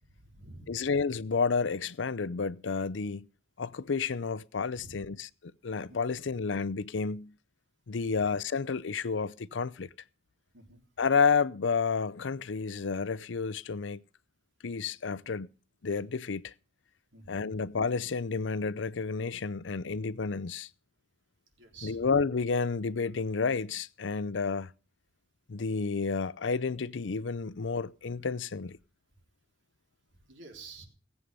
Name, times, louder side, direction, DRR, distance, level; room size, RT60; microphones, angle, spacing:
voice 1, 0.1-0.8 4.8-5.1 5.9-6.0 10.5-10.8 17.1-17.4 21.6-22.1 30.3-30.9, right 3 dB, 85° right, 3.5 m, -49 dB
voice 2, 0.7-3.3 3.6-7.3 7.9-9.9 11.0-14.0 14.6-15.5 15.8-16.5 17.3-20.7 21.8-24.7 25.5-28.8, left 5 dB, 90° left, 0.6 m, -30 dB
18.5 x 8.4 x 5.3 m
head